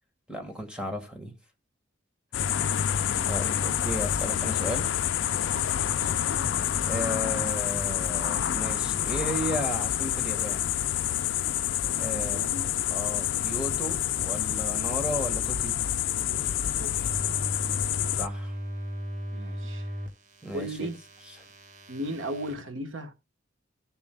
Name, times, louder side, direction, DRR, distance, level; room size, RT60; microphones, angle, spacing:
voice 1, 0.3-1.3 3.2-4.9 6.9-10.7 12.0-12.4 12.9-15.8 18.1-18.5 20.4-20.9, equal, 5° right, 1.6 m, -34 dB
sound 1, 2.3-18.3, left 10 dB, 70° left, 0.5 m, -28 dB
voice 2, 2.4-2.8 3.1-3.7 5.5-6.1 11.9-12.7 13.3-13.4 16.8-17.1 19.3-19.9 20.5-21.0 21.9-23.1, right 1 dB, 90° right, 1.3 m, -37 dB
sound 2, 16.3-22.6, equal, 45° right, 1.7 m, -37 dB
17.5 x 7.1 x 2.3 m
head